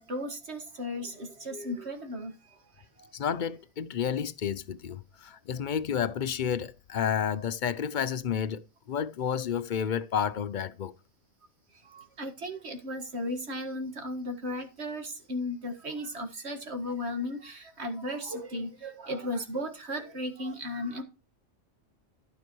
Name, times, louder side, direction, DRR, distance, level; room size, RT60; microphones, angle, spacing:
voice 1, 0.0-2.3 11.9-21.0, left 1 dB, 60° right, 2.1 m, -35 dB
voice 2, 3.1-10.9, left 8 dB, 50° left, 0.6 m, -31 dB
12.5 x 6.1 x 4.6 m
omnidirectional pair, 1.3 m